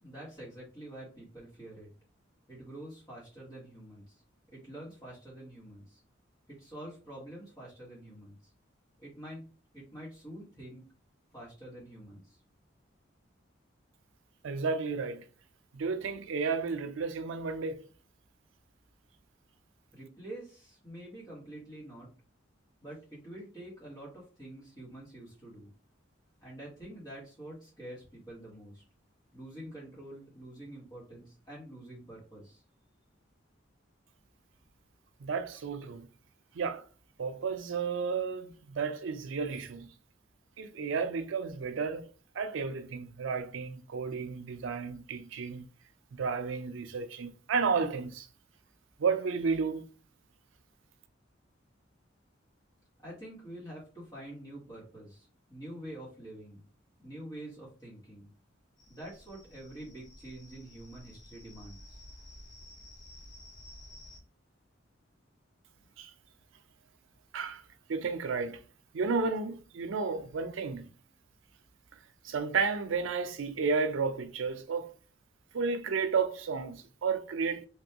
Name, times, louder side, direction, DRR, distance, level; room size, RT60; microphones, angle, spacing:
voice 1, 0.0-1.9 2.5-4.1 4.5-6.0 6.5-8.4 9.0-9.4 9.7-10.8 11.3-12.4 19.9-22.1 22.8-25.7 26.4-28.8 29.3-32.6 53.0-56.6 57.0-58.3 58.9-62.0, right 1 dB, 20° left, 1.4 m, -47 dB
voice 2, 14.4-15.2 15.7-17.9 35.2-36.1 36.5-36.9 37.2-39.9 40.6-42.1 42.4-45.7 46.1-48.3 49.0-49.9 66.0-66.1 67.3-67.6 67.9-68.6 68.9-70.9 72.2-74.9 75.5-77.7, right 5 dB, 85° right, 0.4 m, -32 dB
sound 1, 58.8-64.2, left 1 dB, 80° left, 1.7 m, -52 dB
3.3 x 2.6 x 2.8 m
head